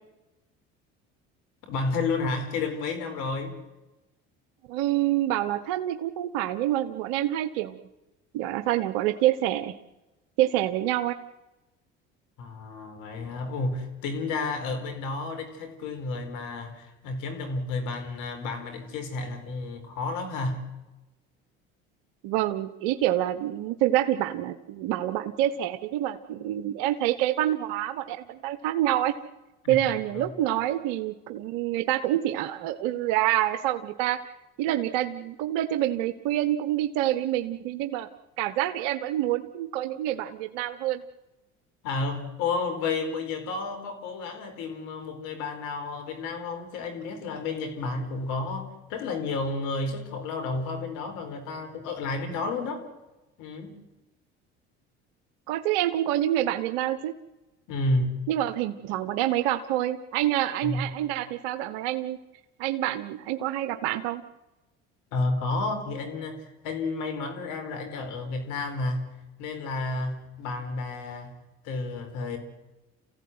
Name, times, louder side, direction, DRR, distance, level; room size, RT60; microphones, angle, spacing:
voice 1, 1.6-3.6 12.4-20.7 29.6-29.8 30.1-30.3 41.8-52.9 53.4-53.8 57.7-58.2 60.6-60.9 65.1-69.1 69.4-71.3 71.6-72.4, left 3 dB, 75° left, 7 dB, 4.6 m, -31 dB
voice 2, 4.7-7.8 8.3-9.7 10.4-11.1 22.2-29.1 29.7-34.2 34.6-38.1 38.4-41.0 55.5-57.1 58.3-62.2 62.6-64.2, right 13 dB, 75° right, 11 dB, 1.2 m, -27 dB
28.0 x 15.5 x 9.6 m, 1.0 s
hypercardioid pair, 70°, 31 cm